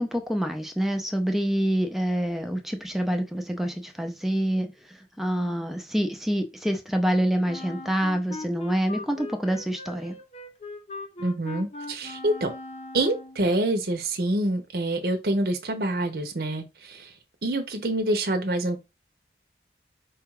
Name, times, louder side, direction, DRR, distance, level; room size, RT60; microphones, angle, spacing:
voice 1, 0.0-4.7 5.2-10.2, equal, ahead, 0.5 m, -26 dB
Wind instrument woodwind instrument, 7.4-13.5, left 2 dB, 35° left, 0.7 m, -40 dB
voice 2, 11.2-12.5 12.9-17.1 17.4-18.8, right 1 dB, 60° right, 0.8 m, -26 dB
4.6 x 2.4 x 4.7 m
head